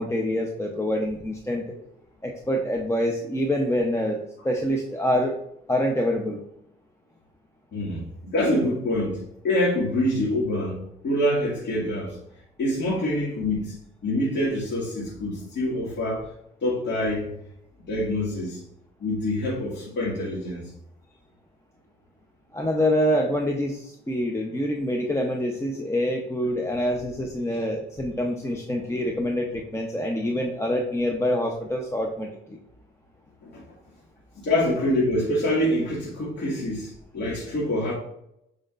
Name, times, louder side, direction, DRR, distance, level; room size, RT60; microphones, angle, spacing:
voice 1, 0.0-1.7 2.2-5.4 5.7-6.4 22.5-32.6, equal, 15° left, 2 dB, 0.8 m, -26 dB
voice 2, 7.7-12.2 12.6-16.3 16.6-17.3 17.8-18.6 19.0-20.7 27.5-27.6 33.4-33.6 34.3-37.9, left 1 dB, 60° left, -6 dB, 2.2 m, -26 dB
7.5 x 5.1 x 2.5 m, 0.77 s
cardioid pair, 90°, 20 cm